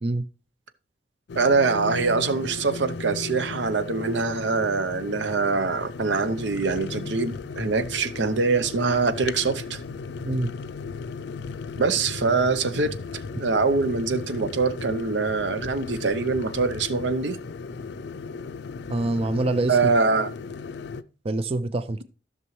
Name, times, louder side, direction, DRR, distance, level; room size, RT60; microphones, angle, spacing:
sound 1, 1.3-21.0, left 4 dB, 65° left, 0.4 m, -36 dB
voice 1, 1.3-9.8 11.8-12.9 13.4-17.4 19.7-20.3, right 4 dB, 80° right, 0.7 m, -24 dB
voice 2, 18.9-19.8 21.2-22.0, right 2 dB, 35° right, 0.4 m, -25 dB
14.0 x 6.1 x 3.1 m
head